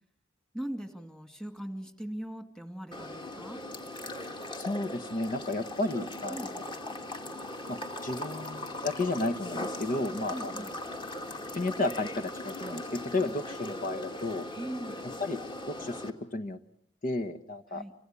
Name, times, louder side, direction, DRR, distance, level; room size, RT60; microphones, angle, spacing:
voice 1, 0.5-3.6 6.3-6.5 10.3-10.7 13.2-13.3 14.6-15.0 17.7-17.9, right 1 dB, 5° left, 7 dB, 2.3 m, -40 dB
sound 1, 2.9-16.1, left 1 dB, 25° left, 2.8 m, -39 dB
voice 2, 4.5-6.6 7.7-10.6 11.5-14.5 15.2-15.4 15.7-16.6 17.0-17.8, left 2 dB, 45° left, 10 dB, 1.0 m, -33 dB
29.0 x 25.5 x 6.9 m, 0.70 s
head